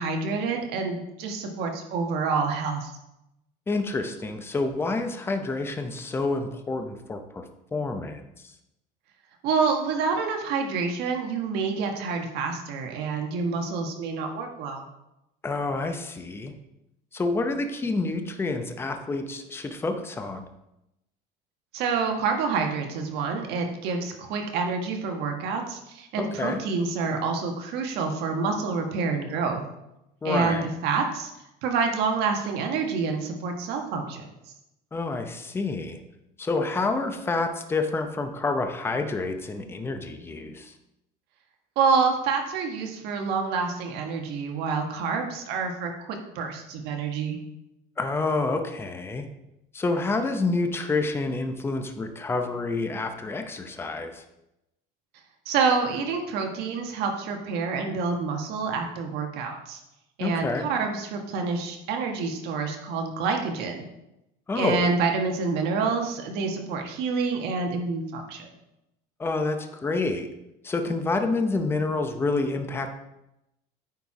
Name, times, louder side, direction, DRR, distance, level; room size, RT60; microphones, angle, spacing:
voice 1, 0.0-2.9 9.4-14.9 21.7-29.6 30.2-31.3 31.6-34.3 41.7-47.4 55.4-59.8 60.2-63.9 64.5-68.5, right 4 dB, 65° right, 3 dB, 1.5 m, -27 dB
voice 2, 3.7-7.4 7.7-8.5 15.4-16.5 17.1-20.4 26.2-26.6 30.2-30.7 34.9-36.0 36.4-40.7 48.0-49.2 49.7-54.2 60.2-60.7 64.5-64.9 69.2-70.3 70.6-72.9, left 3 dB, 15° left, 6 dB, 0.7 m, -28 dB
9.3 x 4.5 x 4.9 m, 0.89 s
cardioid pair, 145°, 18 cm